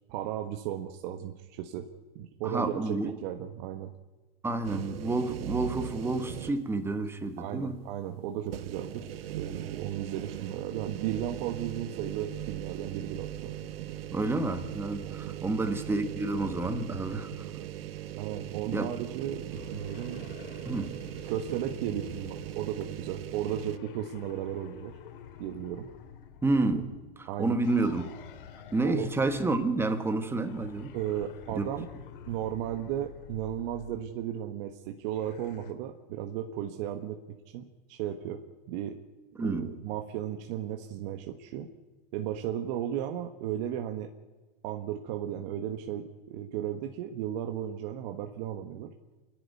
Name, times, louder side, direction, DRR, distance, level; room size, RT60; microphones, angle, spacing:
voice 1, 0.1-1.9 2.1-3.9 7.4-9.1 9.4-13.5 15.0-15.3 18.2-20.2 21.2-24.9 25.4-25.9 27.3-27.6 28.8-29.1 30.9-31.9 32.3-37.2 37.5-38.4 38.7-38.9 39.4-41.7 42.1-44.1 44.6-48.9, right 10 dB, 45° right, 1.5 m, -35 dB
voice 2, 2.4-3.2 4.4-7.8 14.1-17.3 18.7-19.0 20.6-20.9 26.4-28.1 28.7-30.9 31.5-31.6 39.4-39.7, right 2 dB, 10° right, 1.5 m, -29 dB
sound 1, 4.6-6.8 7.2-7.3 8.5-23.8, right 12 dB, 80° right, 1.1 m, -39 dB
sound 2, 19.5-22.8 23.4-27.1 27.6-29.8 30.4-34.1 35.0-35.7, left 8 dB, 65° left, 2.2 m, -49 dB
28.0 x 11.0 x 9.7 m
hypercardioid pair, 140°, 30 cm